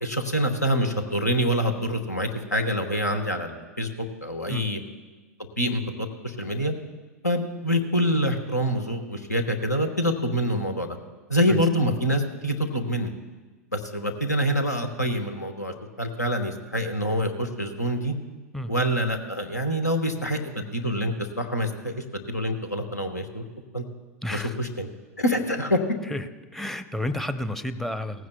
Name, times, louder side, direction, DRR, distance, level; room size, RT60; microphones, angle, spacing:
voice 1, 0.0-4.8 5.6-6.7 7.2-11.0 11.3-13.1 13.7-18.1 18.7-23.4 23.7-23.8 24.3-24.9 25.2-25.8, equal, 90° left, 6 dB, 1.2 m, -26 dB
voice 2, 24.2-24.6 26.1-28.3, left 1 dB, 5° left, 10 dB, 0.6 m, -31 dB
18.0 x 15.5 x 2.3 m, 1.3 s
figure-of-eight pair, 90°, 9 cm